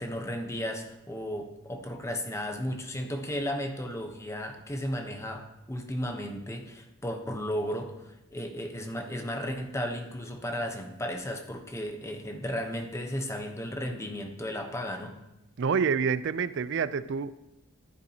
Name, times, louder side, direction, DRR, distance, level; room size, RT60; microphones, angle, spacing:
voice 1, 0.0-15.2, equal, 15° left, 4 dB, 0.9 m, -34 dB
voice 2, 15.6-17.3, right 6 dB, 60° right, 15 dB, 0.4 m, -27 dB
14.5 x 8.7 x 2.8 m, 0.94 s
head